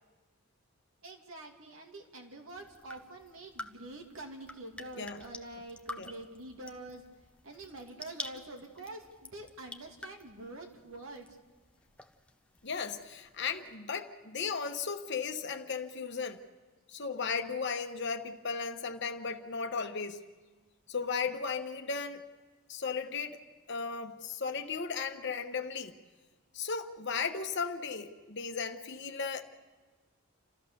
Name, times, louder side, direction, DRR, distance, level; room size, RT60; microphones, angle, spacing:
voice 1, 1.0-7.0 7.4-11.3, right 2 dB, 70° right, 2.5 m, -46 dB
sound 1, 2.5-13.8, left 2 dB, 5° left, 0.7 m, -49 dB
voice 2, 12.6-16.4 16.9-20.2 20.9-22.2 22.7-23.4 23.7-25.9 26.5-29.4, left 5 dB, 55° left, 1.1 m, -36 dB
29.5 x 13.5 x 6.9 m
head